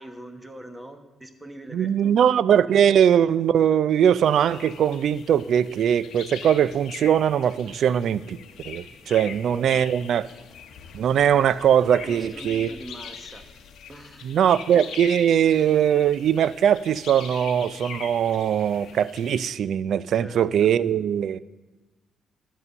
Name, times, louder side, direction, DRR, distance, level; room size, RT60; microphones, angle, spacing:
voice 1, 0.0-2.4 9.2-9.9 10.2-10.4 12.0-13.4 13.9-14.3 20.1-20.5, right 1 dB, 10° right, 7 dB, 1.1 m, -42 dB
voice 2, 1.7-8.4 8.6-10.2 10.9-12.7 14.2-21.4, right 9 dB, 65° right, 17 dB, 0.3 m, -21 dB
sound 1, 4.2-19.5, left 7 dB, 80° left, 0.8 m, -42 dB
11.0 x 5.5 x 6.7 m, 1.2 s
cardioid pair, 90°, 0 cm